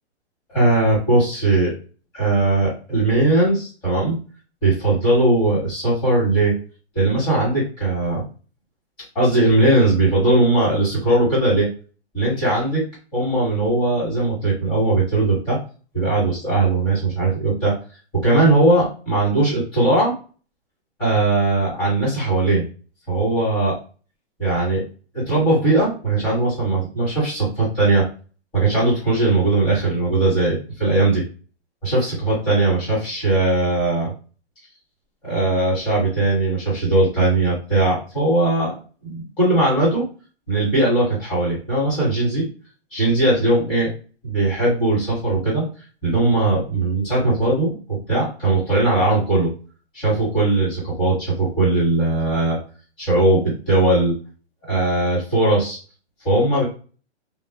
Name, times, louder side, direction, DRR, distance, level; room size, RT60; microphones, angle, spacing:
voice 1, 0.5-1.7 2.1-4.2 4.6-6.5 6.9-8.2 9.1-11.7 12.1-12.8 13.1-15.6 15.9-17.7 18.1-20.1 21.0-22.6 23.1-23.8 24.4-24.8 25.1-28.0 28.5-31.2 31.8-34.1 35.2-40.0 40.5-42.4 42.9-43.9 44.2-45.7 46.0-49.5 49.9-52.6 53.0-54.1 54.7-55.8 56.2-56.6, right 2 dB, 15° left, -9 dB, 1.3 m, -19 dB
2.3 x 2.3 x 2.4 m, 0.36 s
hypercardioid pair, 165°, 35 cm